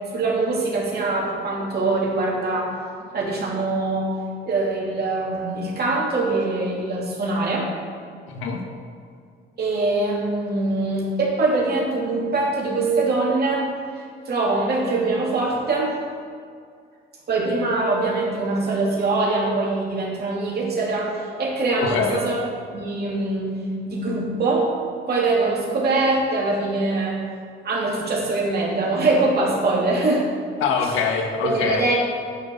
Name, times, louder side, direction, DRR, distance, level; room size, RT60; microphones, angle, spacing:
voice 1, 0.1-2.7 3.1-4.2 4.4-7.7 9.6-13.7 14.3-16.0 17.3-22.4 22.7-23.6 23.9-24.7 25.1-27.2 27.6-30.3 31.4-31.9, right 2 dB, 50° right, -3 dB, 2.7 m, -23 dB
voice 2, 8.3-8.6 21.8-22.2 30.6-31.9, left 5 dB, 90° left, 3 dB, 1.4 m, -24 dB
8.7 x 7.0 x 6.9 m, 2.2 s
cardioid pair, 90°, 20 cm